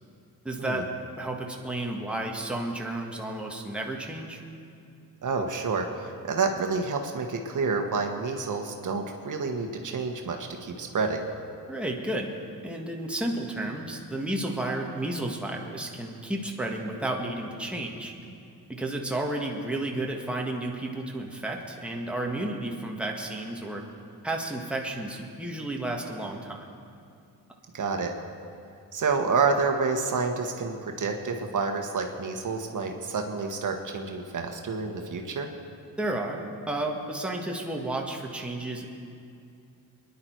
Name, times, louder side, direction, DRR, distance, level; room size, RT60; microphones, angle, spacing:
voice 1, 0.4-0.9 1.2-4.4 11.7-12.3 12.6-18.1 18.7-23.8 24.2-26.7 36.0-38.9, right 1 dB, 5° right, -1 dB, 1.6 m, -32 dB
voice 2, 5.2-11.3 27.7-28.2 28.9-35.5, right 4 dB, 55° right, 3 dB, 1.4 m, -29 dB
23.5 x 10.5 x 4.6 m, 2.5 s
cardioid pair, 110°, 36 cm